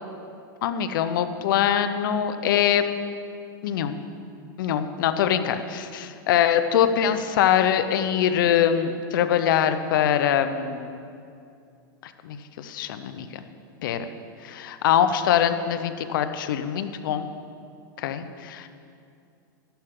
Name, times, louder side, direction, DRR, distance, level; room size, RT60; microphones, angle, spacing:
voice 1, 0.6-2.8 3.6-4.0 4.6-11.0 12.0-13.4 13.8-14.1 14.4-17.3 18.0-18.7, left 9 dB, 70° left, 10 dB, 0.9 m, -23 dB
14.0 x 11.5 x 3.8 m, 2.5 s
supercardioid pair, 130°, 11 cm